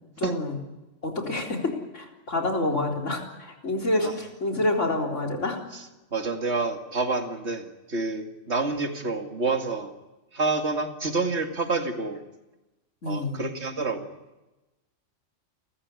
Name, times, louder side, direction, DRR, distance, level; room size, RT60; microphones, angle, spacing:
voice 1, 0.2-0.6 1.0-5.6 13.0-13.4, left 2 dB, 75° left, 1 dB, 4.4 m, -28 dB
voice 2, 6.1-9.9 10.3-12.2 13.1-14.1, right 3 dB, 60° right, 5 dB, 2.6 m, -28 dB
30.0 x 14.5 x 9.7 m, 1.1 s
omnidirectional pair, 1.3 m